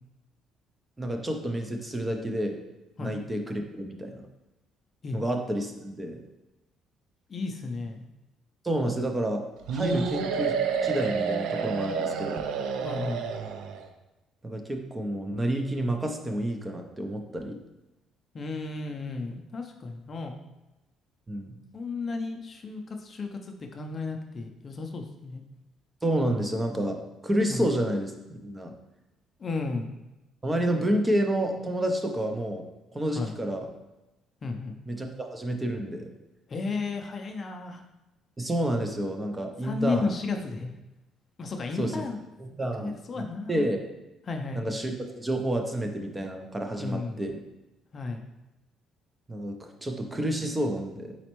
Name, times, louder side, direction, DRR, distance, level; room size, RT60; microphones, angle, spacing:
voice 1, 1.0-2.6 3.0-4.2 5.1-6.2 8.6-9.4 9.7-10.5 10.8-12.4 14.4-17.6 21.3-21.5 26.0-28.1 28.4-28.7 30.4-32.7 32.9-33.7 34.9-36.1 38.4-40.2 41.7-42.0 42.4-43.8 44.5-47.4 49.3-51.2, right 1 dB, 15° right, 4 dB, 0.5 m, -29 dB
voice 2, 7.3-8.0 9.9-10.1 12.8-13.2 18.3-20.4 21.7-25.4 27.5-27.6 29.4-29.9 33.1-33.3 34.4-34.8 36.5-37.8 39.6-40.7 41.4-42.2 42.8-43.6 44.3-44.6 46.8-47.2 47.9-48.2, left 3 dB, 35° left, 4 dB, 0.5 m, -33 dB
sound 1, 9.7-13.9, right 6 dB, 80° right, 0.4 m, -29 dB
4.2 x 4.0 x 3.0 m, 0.98 s
cardioid pair, 125°, 0 cm